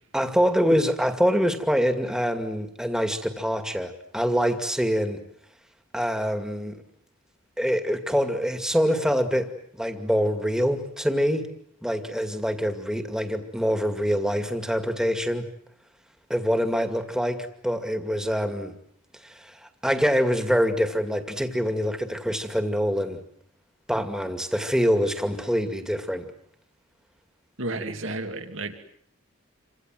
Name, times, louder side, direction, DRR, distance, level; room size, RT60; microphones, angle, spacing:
voice 1, 0.1-5.2 5.9-6.8 7.6-11.5 11.8-15.5 16.3-18.7 19.2-23.2 23.9-26.3, equal, 5° right, 7 dB, 2.3 m, -25 dB
voice 2, 27.6-28.8, right 2 dB, 65° right, 6 dB, 2.8 m, -32 dB
28.5 x 25.5 x 7.8 m, 0.67 s
head